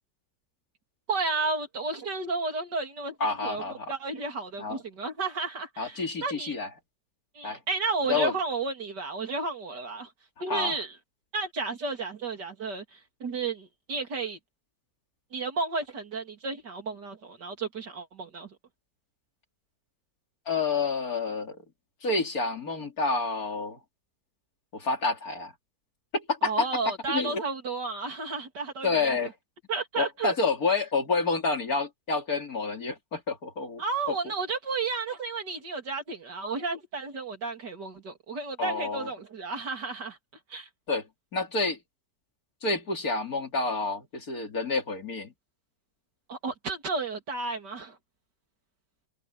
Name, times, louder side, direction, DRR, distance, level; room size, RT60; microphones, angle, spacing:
voice 1, 1.1-3.2 3.4-3.6 3.9-6.5 7.4-10.1 10.4-11.0 11.3-14.4 15.3-18.5 26.4-29.3 29.7-30.3 33.8-40.2 40.5-40.7 46.3-48.0, right 4 dB, 80° right, 3.7 m, -32 dB
voice 2, 3.2-3.9 4.6-4.8 5.8-6.7 7.4-7.6 8.1-8.3 10.5-10.8 20.5-21.6 22.0-23.8 24.7-25.5 26.1-26.7 27.1-27.4 28.8-29.3 30.0-34.2 38.6-39.1 40.9-41.1 41.3-41.8 42.6-45.3, left 3 dB, 60° left, 3.3 m, -29 dB
omnidirectional pair, 1.8 m